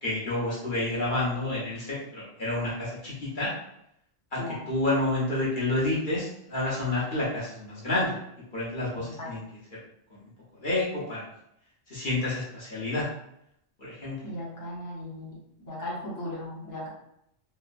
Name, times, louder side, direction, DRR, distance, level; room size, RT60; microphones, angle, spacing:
voice 1, 0.0-3.5 4.3-4.4 4.7-8.2 8.5-9.4 10.1-10.2 10.6-11.2 11.9-13.1 13.8-14.2, left 2 dB, 55° left, -8 dB, 0.9 m, -29 dB
voice 2, 8.9-9.3 14.2-15.4 15.7-16.9, left 1 dB, 20° left, -5 dB, 0.7 m, -37 dB
3.0 x 2.0 x 2.5 m, 0.76 s
omnidirectional pair, 1.1 m